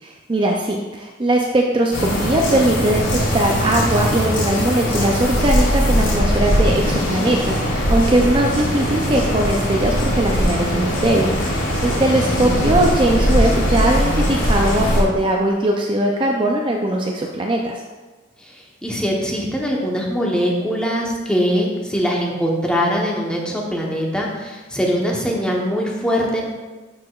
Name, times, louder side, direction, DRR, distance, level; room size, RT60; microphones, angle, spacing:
voice 1, 0.0-17.8, right 1 dB, 25° right, 0 dB, 0.5 m, -20 dB
sound 1, 1.9-15.0, equal, 75° left, 2.3 m, -20 dB
voice 2, 11.8-12.5 18.4-18.5 18.8-26.4, equal, 5° left, -2 dB, 0.9 m, -22 dB
12.0 x 4.8 x 2.4 m, 1.2 s
head